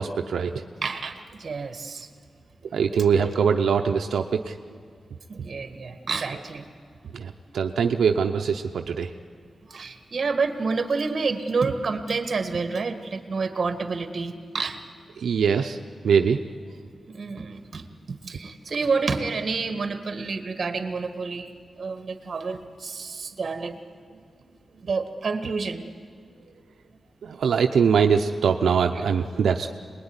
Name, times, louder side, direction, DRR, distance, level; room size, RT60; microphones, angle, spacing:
voice 1, 0.0-0.6 2.7-4.5 7.1-9.1 15.2-15.8 16.0-16.4 27.2-29.7, right 6 dB, 85° right, 4 dB, 0.8 m, -22 dB
voice 2, 0.8-2.1 5.3-6.7 9.7-14.8 17.1-21.5 21.8-23.8 24.8-25.8 29.0-29.1, right 4 dB, 45° right, 7 dB, 1.8 m, -29 dB
26.0 x 20.5 x 9.8 m, 2.1 s
wide cardioid pair, 130°, 0 cm